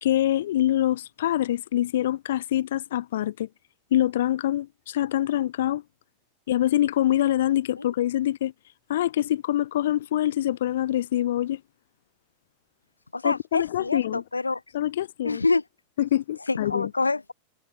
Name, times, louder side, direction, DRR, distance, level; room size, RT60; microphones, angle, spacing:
voice 1, 0.0-3.5 3.9-5.8 6.5-8.5 8.9-11.6 13.2-14.2 14.7-15.4 16.0-16.9, left 13 dB, 60° left, 1.0 m, -25 dB
voice 2, 13.1-14.6 15.2-15.6 16.5-17.3, left 3 dB, 80° left, 4.8 m, -26 dB
figure-of-eight pair, 90°, 0 cm